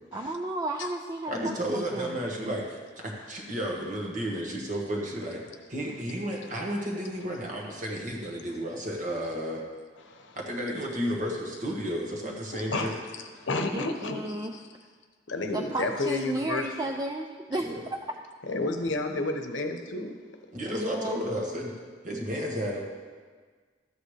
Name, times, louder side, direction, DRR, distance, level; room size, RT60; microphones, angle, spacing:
voice 1, 0.1-2.1 13.7-14.5 15.5-18.0 20.6-21.2, right 2 dB, 20° right, 2 dB, 0.4 m, -33 dB
voice 2, 1.3-2.8 3.0-5.4 5.7-9.6 10.3-13.0 15.5-15.7 17.6-17.8 20.5-21.7 22.0-22.8, equal, 40° right, -1 dB, 1.5 m, -32 dB
voice 3, 12.5-14.5 15.3-16.7 18.5-20.1, left 2 dB, 85° left, 5 dB, 0.9 m, -31 dB
13.0 x 8.0 x 3.3 m, 1.5 s
head